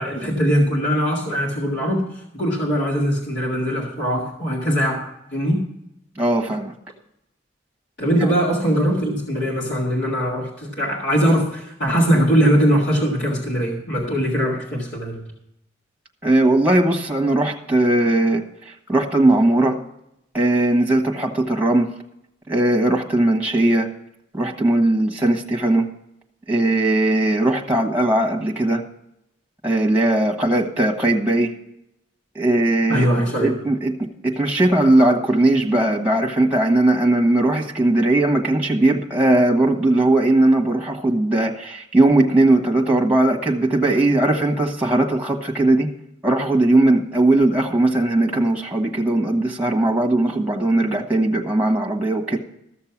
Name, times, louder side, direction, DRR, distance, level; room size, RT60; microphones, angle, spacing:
voice 1, 0.0-5.6 8.0-15.2 32.9-33.5, equal, 65° left, -2 dB, 2.1 m, -21 dB
voice 2, 6.2-6.7 16.2-19.8 20.3-21.9 22.5-23.9 24.3-25.9 26.5-28.8 29.6-31.5 32.3-33.9 34.2-45.9 46.2-52.4, right 2 dB, 10° right, 1 dB, 1.3 m, -19 dB
14.0 x 6.7 x 5.9 m, 0.81 s
head